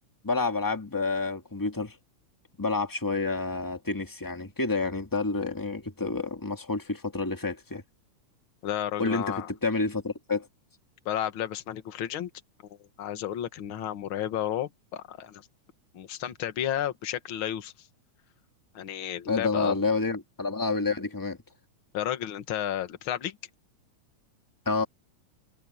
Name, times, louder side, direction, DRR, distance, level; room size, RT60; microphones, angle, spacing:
voice 1, 0.2-1.9 2.6-7.8 9.0-10.5 19.3-21.4 24.6-24.8, left 3 dB, 10° left, 1.3 m, -29 dB
voice 2, 8.6-9.5 11.1-12.3 12.8-15.5 15.9-17.9 18.7-19.8 21.9-23.4, left 11 dB, 50° left, 1.9 m, -32 dB
omnidirectional pair, 3.5 m